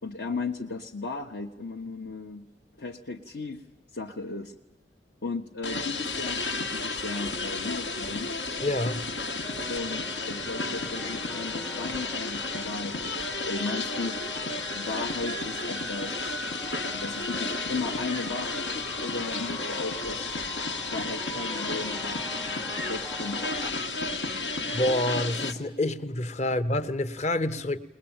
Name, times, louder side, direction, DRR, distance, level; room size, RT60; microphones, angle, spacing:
voice 1, 0.0-2.5 2.8-3.6 3.9-4.5 5.2-8.3 9.7-14.2 14.7-16.3 16.8-20.3 20.9-22.2 22.7-23.7, left 3 dB, 70° left, 1.1 m, -36 dB
sound 1, 5.6-25.5, left 3 dB, 90° left, 1.6 m, -32 dB
voice 2, 8.6-9.0 24.3-24.4 24.7-27.8, left 1 dB, 40° left, 0.9 m, -28 dB
sound 2, 9.4-23.7, right 1 dB, 10° left, 0.7 m, -42 dB
21.0 x 20.5 x 8.9 m
head